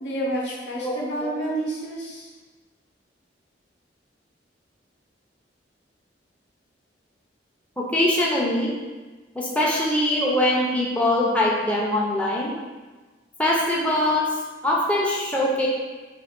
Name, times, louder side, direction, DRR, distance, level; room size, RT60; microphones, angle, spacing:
voice 1, 0.0-2.3, right 1 dB, 75° left, -4 dB, 0.9 m, -29 dB
voice 2, 7.9-8.7 9.4-12.5 13.4-14.3 14.6-15.7, left 1 dB, 10° left, -4 dB, 0.4 m, -22 dB
3.6 x 2.6 x 3.6 m, 1.3 s
head